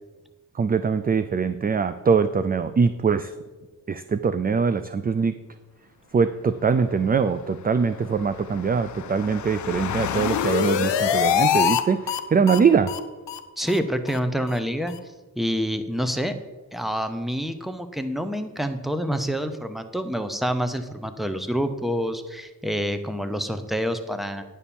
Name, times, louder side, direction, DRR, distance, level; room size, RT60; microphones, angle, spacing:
voice 1, 0.5-3.3 3.9-5.4 6.1-12.9, right 5 dB, 25° right, 12 dB, 0.3 m, -22 dB
Engine, 6.5-12.1, left 9 dB, 45° left, 0.5 m, -35 dB
sound 1, 9.8-11.8 12.1-12.2 12.5-12.6 12.9-13.0 13.3-13.4 13.7-13.8 14.1-14.2 14.5-14.6 14.9-15.0, left 9 dB, 80° left, 0.8 m, -24 dB
voice 2, 13.6-15.0 15.4-16.4 16.7-24.4, equal, ahead, 9 dB, 0.8 m, -27 dB
9.8 x 4.3 x 7.1 m, 1.3 s
cardioid pair, 75°, 43 cm